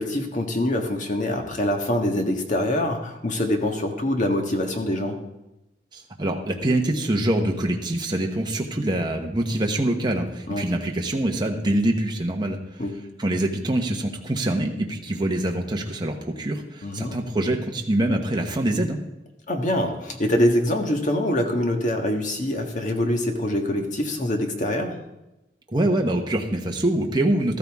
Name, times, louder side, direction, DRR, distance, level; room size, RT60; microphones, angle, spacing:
voice 1, 0.0-5.2 10.5-10.6 12.8-13.0 16.8-17.2 19.5-25.0, left 1 dB, 45° left, 3 dB, 1.6 m, -24 dB
voice 2, 5.9-12.6 13.2-19.0 25.7-27.6, right 1 dB, 25° right, 1 dB, 1.2 m, -24 dB
13.5 x 13.5 x 3.6 m, 0.94 s
head